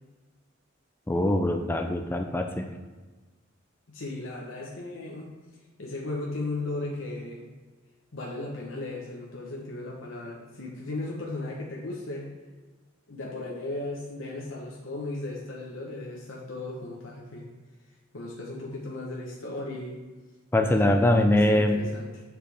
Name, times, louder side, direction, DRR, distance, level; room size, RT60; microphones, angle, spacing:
voice 1, 1.1-2.7 20.5-21.8, left 1 dB, 10° left, 4 dB, 0.4 m, -23 dB
voice 2, 3.9-5.3 5.8-7.5 8.1-12.3 13.1-17.5 18.1-20.0 20.6-22.2, left 2 dB, 75° left, -2 dB, 1.0 m, -36 dB
7.3 x 4.6 x 3.4 m, 1.3 s
head